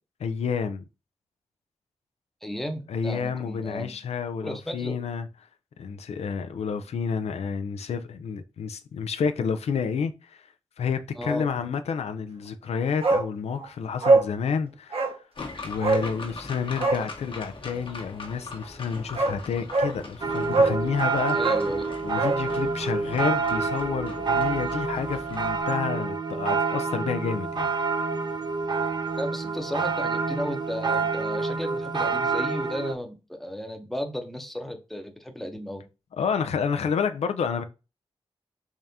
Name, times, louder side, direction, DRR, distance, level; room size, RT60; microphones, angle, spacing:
voice 1, 0.2-0.8 2.9-5.3 5.8-10.5 10.8-15.2 15.6-21.4 22.0-27.7 36.2-37.6, left 6 dB, 85° left, 0.4 m, -29 dB
voice 2, 2.4-3.9 4.4-5.0 11.2-11.5 21.3-21.8 29.2-35.8, equal, ahead, 0.7 m, -34 dB
Bark, 13.0-13.3 13.6-13.7 14.0-14.3 14.9-15.2 15.8-16.1 16.7-17.0 18.6-18.7 19.1-19.4 19.7-20.0 20.5-20.8 21.3-22.4 22.7-22.8, right 3 dB, 65° right, 0.9 m, -22 dB
sound 1, 15.4-25.6, left 3 dB, 55° left, 1.0 m, -41 dB
sound 2, 20.2-32.9, right 4 dB, 45° right, 0.5 m, -28 dB
3.6 x 3.3 x 2.7 m
wide cardioid pair, 95°, 11 cm